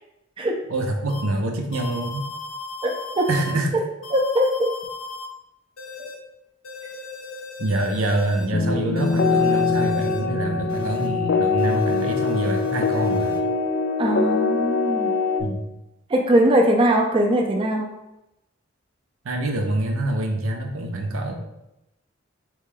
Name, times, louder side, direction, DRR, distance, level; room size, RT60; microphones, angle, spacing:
voice 1, 0.7-2.3 3.3-3.7 7.6-13.4 15.4-15.7 19.2-21.3, right 1 dB, 90° right, 3 dB, 0.6 m, -25 dB
sound 1, 1.1-1.2 1.7-3.5 4.0-5.3 5.8-6.1 6.6-8.5 9.0-10.2 10.7-11.1 11.6-13.4, left 3 dB, 90° left, 0.8 m, -37 dB
voice 2, 2.8-3.3 4.1-4.8 14.0-15.1 16.1-18.0, right 1 dB, 25° right, 1 dB, 0.4 m, -21 dB
sound 2, 8.5-15.4, left 4 dB, 50° left, 0.3 m, -23 dB
3.7 x 3.1 x 3.8 m, 0.90 s
head